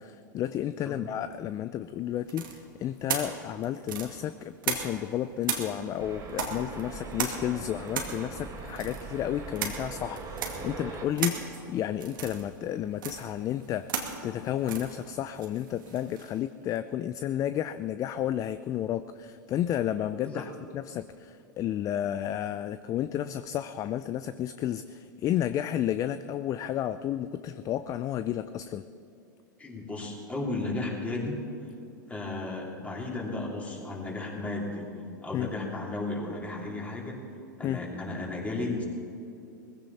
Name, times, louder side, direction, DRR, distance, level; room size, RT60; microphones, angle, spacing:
voice 1, 0.0-28.8 35.3-35.5 37.6-37.8, left 11 dB, 30° left, 12 dB, 0.4 m, -32 dB
sound 1, 2.3-5.1 5.4-16.4, right 6 dB, 80° right, 2.3 m, -36 dB
sound 2, 6.0-11.1, right 3 dB, 30° right, 2.8 m, -41 dB
voice 2, 29.6-31.4 32.1-34.9 35.2-37.2 37.6-38.8, left 2 dB, 15° left, -2 dB, 3.5 m, -34 dB
20.0 x 15.5 x 4.2 m, 2.7 s
hypercardioid pair, 110°, 11 cm